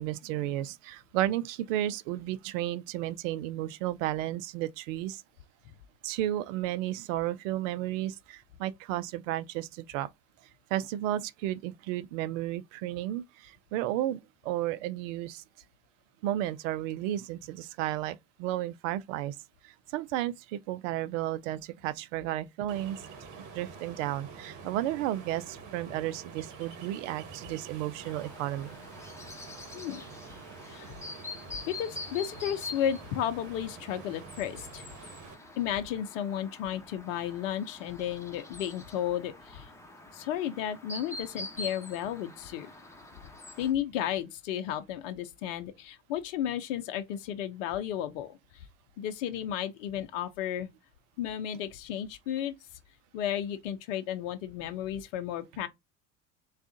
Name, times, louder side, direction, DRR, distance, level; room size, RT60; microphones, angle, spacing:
voice 1, 0.0-5.2 6.0-10.1 10.7-15.4 16.2-19.4 19.6-23.0 23.5-28.8, right 13 dB, 70° right, 0.5 m, -33 dB
Ocean, 22.7-35.3, right 5 dB, 50° right, 1.1 m, -47 dB
Chirp tweet, 28.0-43.7, left 3 dB, 5° left, 1.1 m, -45 dB
voice 2, 29.7-30.0 30.7-30.9 31.7-34.8 35.6-39.7 40.1-42.7 43.6-48.7 49.0-50.7 51.2-52.5 53.1-55.7, left 10 dB, 70° left, 0.6 m, -33 dB
3.5 x 2.4 x 3.9 m
hypercardioid pair, 85°, 39 cm